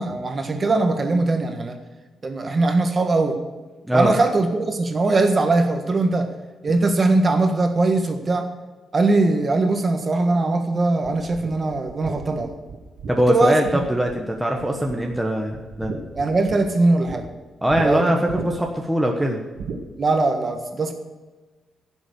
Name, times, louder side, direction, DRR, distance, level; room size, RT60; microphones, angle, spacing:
voice 1, 0.0-1.8 2.2-3.4 3.9-6.3 6.6-8.5 8.9-12.5 13.3-13.6 16.1-17.2 17.8-18.1 20.0-20.9, right 2 dB, 25° right, 6 dB, 1.5 m, -20 dB
sound 1, 11.0-14.3 14.6-15.2 15.5-17.2 17.7-17.9 18.3-18.8 19.6-19.8, right 5 dB, 75° right, 2.1 m, -35 dB
voice 2, 13.1-15.9 17.6-19.4, equal, 5° right, 1 dB, 1.1 m, -22 dB
16.0 x 7.2 x 8.1 m, 1.3 s
wide cardioid pair, 175°, 0 cm